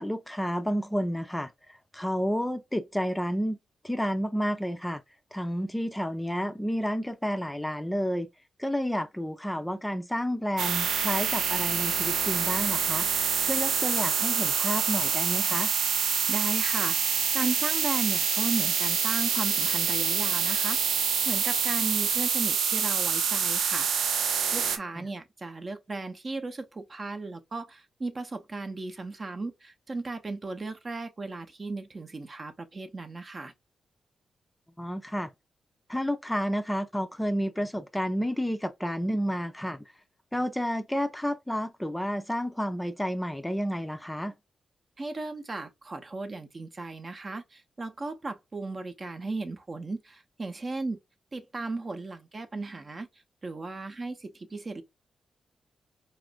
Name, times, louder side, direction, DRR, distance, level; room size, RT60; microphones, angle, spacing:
voice 1, 0.0-1.5 1.9-3.6 3.8-5.0 5.3-8.3 8.6-13.1 13.4-15.7 25.0-25.1 34.8-35.3 35.9-39.8 40.3-44.3, equal, 10° left, 0.5 m, -30 dB
sound 1, 10.6-24.8, right 7 dB, 85° right, 0.5 m, -26 dB
voice 2, 16.3-17.0 17.3-23.9 24.5-33.5 45.0-51.0 51.3-53.1 53.4-54.8, right 3 dB, 45° right, 0.7 m, -36 dB
4.1 x 2.5 x 2.2 m
supercardioid pair, 50°, 0 cm